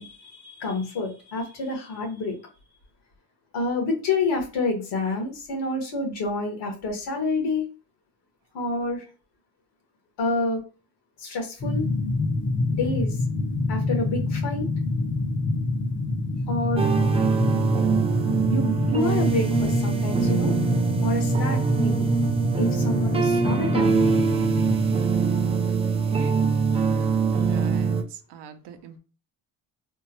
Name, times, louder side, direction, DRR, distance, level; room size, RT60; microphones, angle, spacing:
voice 1, 0.0-2.3 3.5-7.6 8.5-9.0 10.2-10.6 11.2-11.8 12.7-13.1 13.7-14.6 16.5-16.8 18.5-20.5 21.0-22.1 22.6-24.0, left 3 dB, 75° left, 1.6 m, -28 dB
sound 1, 11.6-25.0, left 3 dB, 30° left, 0.7 m, -27 dB
sound 2, 16.8-28.0, right 5 dB, 15° right, 0.3 m, -23 dB
voice 2, 25.7-29.0, right 7 dB, 80° right, 0.7 m, -43 dB
3.5 x 2.2 x 2.9 m
cardioid pair, 130°, 41 cm